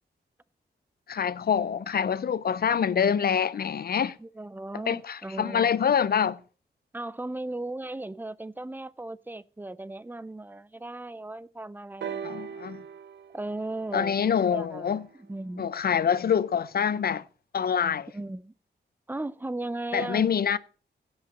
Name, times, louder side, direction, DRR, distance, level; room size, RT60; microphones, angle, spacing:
voice 1, 1.1-4.2 4.9-6.4 12.2-12.8 13.9-15.0 15.6-17.2 17.5-18.1 19.9-20.6, left 7 dB, 60° left, 0.6 m, -25 dB
voice 2, 4.2-5.7 6.9-12.7 13.3-14.2 14.5-14.9 15.2-15.7 18.1-18.5 19.1-20.3, right 2 dB, 10° right, 0.4 m, -36 dB
sound 1, 12.0-15.8 16.8-16.9, right 7 dB, 75° right, 0.8 m, -41 dB
16.5 x 5.6 x 5.2 m
wide cardioid pair, 130°, 18 cm